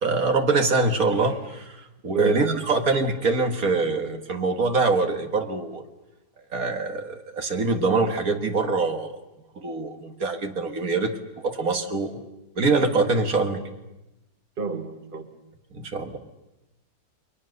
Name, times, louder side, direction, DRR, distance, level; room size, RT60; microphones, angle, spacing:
voice 1, 0.0-5.8 6.5-9.1 9.6-12.2 12.6-13.6 15.7-16.2, right 3 dB, 60° right, 6 dB, 2.1 m, -24 dB
voice 2, 2.1-2.8 14.6-15.3, right 4 dB, 35° right, 8 dB, 1.5 m, -32 dB
29.0 x 23.0 x 6.6 m, 0.97 s
omnidirectional pair, 1.7 m